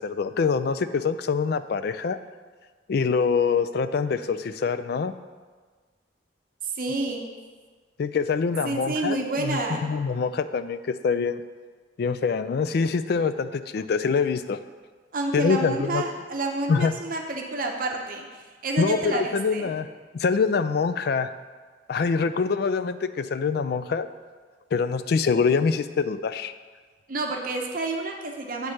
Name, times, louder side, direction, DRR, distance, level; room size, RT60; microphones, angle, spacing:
voice 1, 0.0-2.2 2.9-5.1 8.0-11.4 12.0-14.6 15.3-16.0 16.7-16.9 18.8-19.9 20.1-21.3 21.9-24.1 24.7-26.5, left 5 dB, 55° left, 11 dB, 0.3 m, -25 dB
voice 2, 6.8-7.2 8.6-9.8 15.1-18.2 18.6-19.7 27.1-28.7, right 2 dB, 50° right, 2 dB, 0.7 m, -29 dB
8.5 x 3.3 x 6.3 m, 1.5 s
head